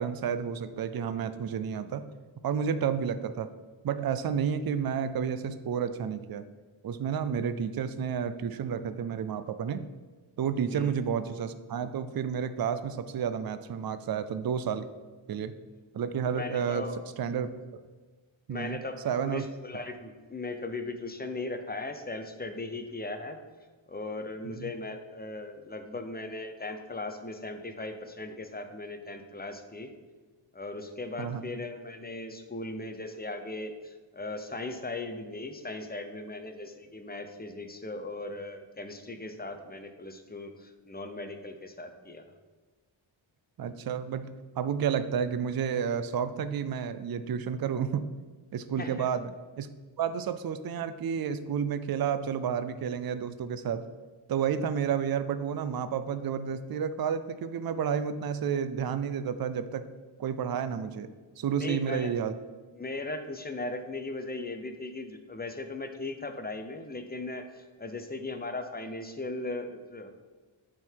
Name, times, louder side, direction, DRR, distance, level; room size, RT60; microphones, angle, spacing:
voice 1, 0.0-2.1 2.4-3.5 3.8-6.4 6.8-9.8 10.4-14.9 15.3-15.5 15.9-16.8 17.2-17.5 18.5-18.8 19.0-19.4 24.4-24.7 31.2-31.4 43.6-48.1 48.5-49.7 50.0-53.9 54.3-59.9 60.2-62.3, right 7 dB, 50° right, 11 dB, 0.5 m, -31 dB
voice 2, 10.7-11.0 16.3-17.0 18.5-23.4 23.9-29.9 30.5-42.2 48.8-49.1 61.5-62.1 62.7-70.1, left 2 dB, 20° left, 7 dB, 0.7 m, -38 dB
8.6 x 3.8 x 4.6 m, 1.3 s
wide cardioid pair, 100°, 48 cm